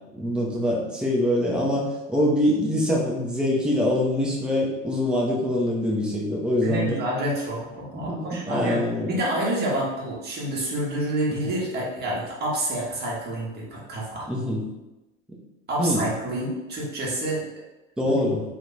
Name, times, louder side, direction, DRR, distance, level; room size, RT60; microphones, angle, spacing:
voice 1, 0.1-7.0 7.9-9.1 14.3-14.6 15.8-16.0 18.0-18.4, left 1 dB, ahead, -3 dB, 0.5 m, -24 dB
voice 2, 6.6-14.3 15.7-17.4 18.0-18.1, right 1 dB, 25° right, -4 dB, 1.0 m, -28 dB
2.9 x 2.2 x 3.7 m, 1.0 s
figure-of-eight pair, 85°, 39 cm